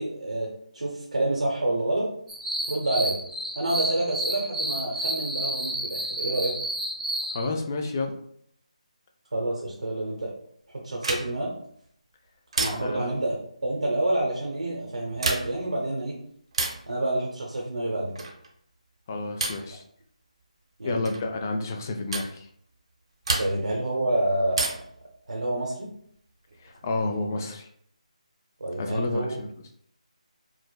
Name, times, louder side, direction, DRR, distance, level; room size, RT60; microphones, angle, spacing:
voice 1, 0.0-2.1 2.6-3.2 3.6-6.6 9.3-10.3 10.7-11.5 12.6-16.2 16.9-18.2 20.8-21.1 23.4-24.7 25.3-25.9 28.6-29.3, right 1 dB, 85° right, -3 dB, 0.8 m, -28 dB
sound 1, 2.3-7.4, right 1 dB, ahead, 0.9 m, -31 dB
voice 2, 7.3-8.2 12.8-13.1 19.1-19.8 20.8-22.5 26.6-27.7 28.8-29.5, left 3 dB, 25° left, 4 dB, 0.3 m, -30 dB
sound 2, 11.0-11.5 12.5-13.1 15.1-15.7 16.5-16.9 18.2-18.5 19.4-19.7 21.0-21.3 22.1-22.3 23.2-23.8 24.5-25.0 26.5-27.2, right 3 dB, 50° right, 0.6 m, -30 dB
4.8 x 2.0 x 2.2 m, 0.66 s
figure-of-eight pair, 165°, 4 cm